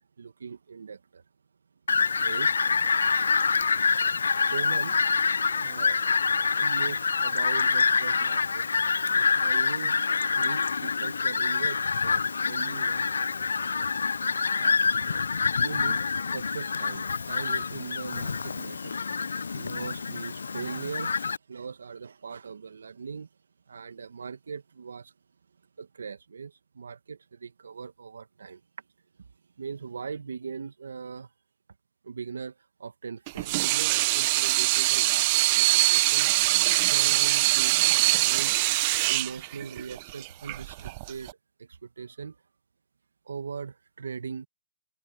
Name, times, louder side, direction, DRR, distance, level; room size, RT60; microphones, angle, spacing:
voice 1, 0.2-1.2 2.2-2.6 4.3-5.0 5.6-6.0 6.5-8.7 9.1-13.6 14.2-15.2 15.6-16.0 16.3-23.3 23.7-25.1 25.8-28.6 29.6-31.3 32.0-36.3 36.9-38.6 39.0-41.3 41.6-42.4 43.3-44.5, right 5 dB, 75° right, 1.9 m, -40 dB
Fowl, 1.9-21.4, left 5 dB, 80° left, 0.5 m, -26 dB
Water tap faucet / Sink (filling or washing), 33.3-41.3, right 22 dB, 35° right, 0.6 m, -23 dB
hypercardioid pair, 135°, 0 cm